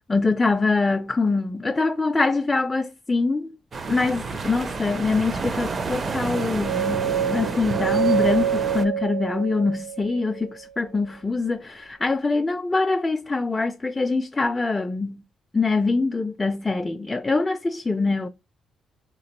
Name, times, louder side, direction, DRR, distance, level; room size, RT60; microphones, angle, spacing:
voice 1, 0.1-3.6 3.9-15.2 15.5-18.3, left 3 dB, 20° left, 0.3 m, -24 dB
sound 1, 3.7-8.9, right 4 dB, 40° right, 0.5 m, -30 dB
sound 2, 6.3-10.4, right 9 dB, 65° right, 0.9 m, -26 dB
3.6 x 2.9 x 2.9 m
cardioid pair, 90°, 0 cm